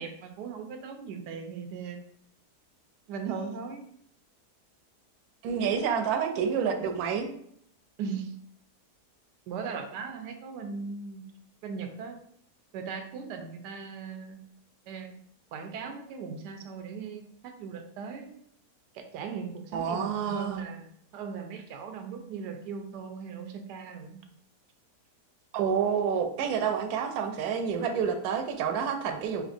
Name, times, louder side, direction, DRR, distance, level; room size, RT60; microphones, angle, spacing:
voice 1, 0.0-2.1 3.1-3.9 8.0-8.4 9.5-11.2 11.6-12.2 12.7-14.4 14.9-15.2 15.5-18.4 18.9-24.2, right 5 dB, 90° right, 5 dB, 1.2 m, -38 dB
voice 2, 5.4-7.3 19.7-20.6 25.5-29.4, right 7 dB, 75° right, 5 dB, 1.0 m, -28 dB
5.2 x 2.8 x 2.5 m, 0.68 s
omnidirectional pair, 1.7 m